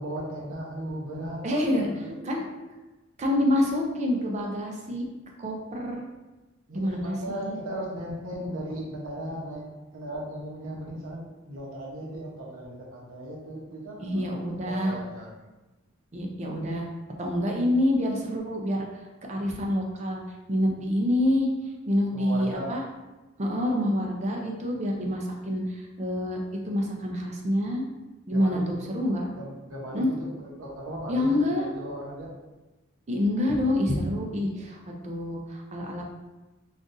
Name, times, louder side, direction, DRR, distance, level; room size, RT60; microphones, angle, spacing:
voice 1, 0.0-1.5 1.8-2.2 6.7-9.7 9.9-15.3 22.1-22.8 28.3-28.8 29.4-30.3 30.6-32.3, right 1 dB, 70° right, -3 dB, 0.8 m, -37 dB
voice 2, 1.4-2.6 3.2-5.1 5.4-6.0 6.7-7.6 14.0-15.0 16.1-16.9 17.2-18.9 19.3-20.2 20.5-21.5 21.9-22.8 23.4-26.4 26.6-27.8 28.3-29.3 29.9-30.1 31.1-31.7 33.1-36.0, left 1 dB, 35° right, 0 dB, 0.5 m, -27 dB
3.8 x 2.4 x 2.5 m, 1.1 s
head